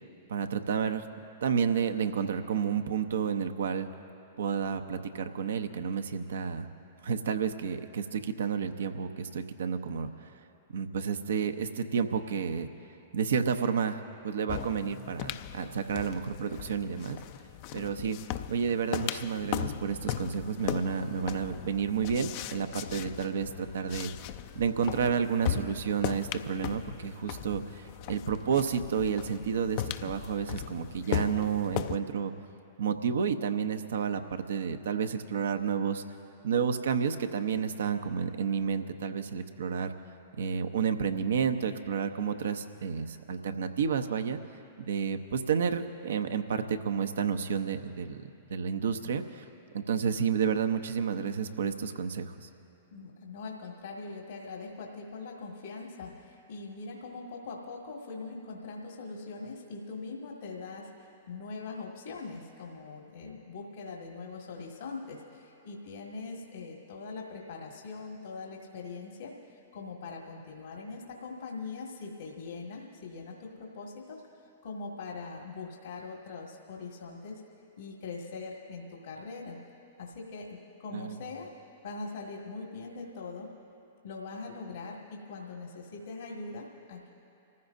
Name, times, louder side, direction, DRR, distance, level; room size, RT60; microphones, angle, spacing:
voice 1, 0.3-1.1 1.4-3.9 4.4-6.7 7.0-10.1 10.7-12.7 13.1-17.2 17.7-18.2 18.5-24.1 24.6-32.3 32.8-36.0 36.4-39.9 40.4-44.4 44.9-49.4 49.7-52.5 80.9-81.2, right 6 dB, 70° right, 8 dB, 0.7 m, -30 dB
sound 1, 14.5-32.0, left 11 dB, 50° left, 0.5 m, -38 dB
voice 2, 52.9-74.2 74.6-77.4 77.8-79.6 80.0-81.5 81.8-83.5 84.0-87.1, left 4 dB, 75° left, -2 dB, 1.8 m, -42 dB
28.0 x 15.0 x 2.6 m, 2.8 s
hypercardioid pair, 110°, 0 cm